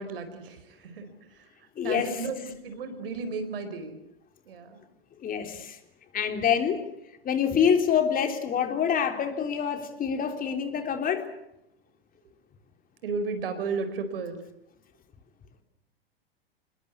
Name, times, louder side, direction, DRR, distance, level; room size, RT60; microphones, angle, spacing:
voice 1, 0.0-4.0 4.4-4.8 13.0-14.4, right 4 dB, 70° right, 9 dB, 4.7 m, -34 dB
voice 2, 1.8-2.2 5.2-5.8 6.1-6.8 7.2-11.3, left 7 dB, 30° left, 6 dB, 3.7 m, -26 dB
27.0 x 21.5 x 8.4 m, 0.83 s
figure-of-eight pair, 95°, 30 cm